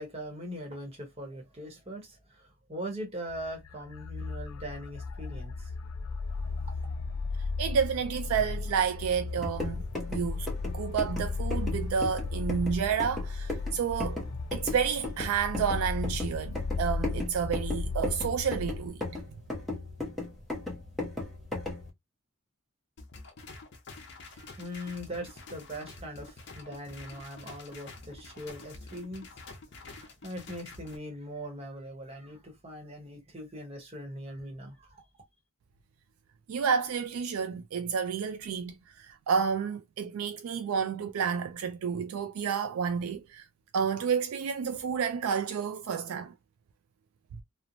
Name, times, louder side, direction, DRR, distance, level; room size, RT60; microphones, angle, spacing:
voice 1, 0.0-5.7 24.2-29.4 29.7-35.0, equal, 25° right, 0.9 m, -41 dB
sound 1, 3.3-18.9, left 3 dB, 75° left, 0.4 m, -35 dB
voice 2, 7.6-9.8 10.1-10.5 10.7-14.2 14.5-19.2 36.5-43.5 43.7-46.3, right 6 dB, 75° right, 0.3 m, -30 dB
sound 2, 9.3-21.9, left 2 dB, ahead, 0.8 m, -37 dB
sound 3, 23.0-31.0, left 3 dB, 50° left, 0.7 m, -48 dB
2.9 x 2.0 x 2.5 m
head